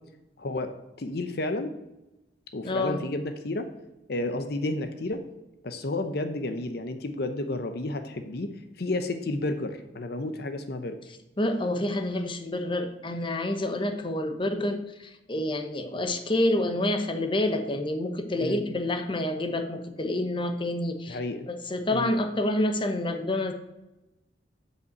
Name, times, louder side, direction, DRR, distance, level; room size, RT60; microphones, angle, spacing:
voice 1, 0.4-1.8 2.5-3.7 4.1-5.3 5.6-11.0 18.4-18.6 21.1-21.5 21.9-22.1, left 2 dB, 60° left, 8 dB, 0.7 m, -31 dB
voice 2, 2.6-3.0 11.4-21.2 21.5-23.5, left 1 dB, 30° left, 6 dB, 0.9 m, -28 dB
7.9 x 5.6 x 7.8 m, 0.98 s
head